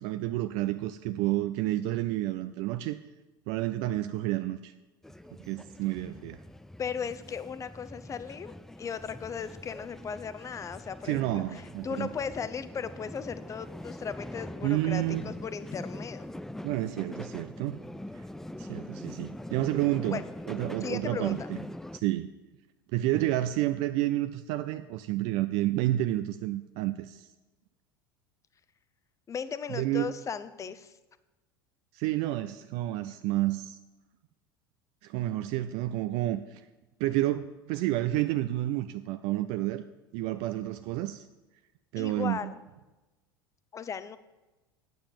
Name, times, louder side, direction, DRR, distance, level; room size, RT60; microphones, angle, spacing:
voice 1, 0.0-3.0 3.5-4.7 5.4-6.4 11.0-12.1 14.6-15.2 16.6-17.8 18.6-20.2 20.5-21.6 21.9-22.3 22.9-27.3 29.7-30.1 31.9-33.8 35.0-36.6 37.0-39.8 40.1-41.3 41.9-42.5, right 15 dB, 55° right, 10 dB, 0.5 m, -30 dB
sound 1, 5.0-22.0, left 1 dB, 5° left, 0.4 m, -43 dB
voice 2, 6.8-16.3 20.1-20.2 20.8-21.5 29.3-30.9 42.0-42.6 43.7-44.2, left 6 dB, 25° left, 14 dB, 0.7 m, -37 dB
8.6 x 6.9 x 7.5 m, 1.1 s
hypercardioid pair, 75°, 12 cm